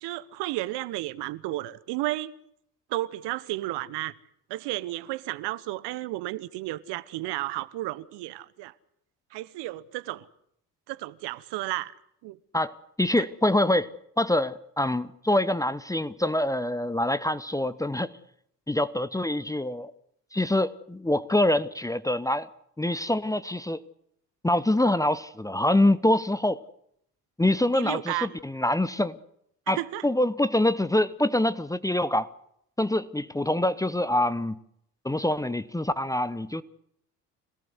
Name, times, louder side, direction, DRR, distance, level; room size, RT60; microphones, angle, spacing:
voice 1, 0.0-2.3 2.9-4.1 4.5-8.7 9.3-10.3 10.9-11.9 12.2-12.4 27.7-28.3 29.7-30.0, right 17 dB, 55° right, 1.2 m, -32 dB
voice 2, 13.0-13.9 14.2-18.1 18.7-19.9 20.3-22.5 22.8-23.8 24.4-26.6 27.4-29.2 29.7-29.8 30.0-32.3 32.8-34.6 35.0-36.6, left 1 dB, 5° left, 0.9 m, -25 dB
26.0 x 17.5 x 8.1 m
hypercardioid pair, 60°, 48 cm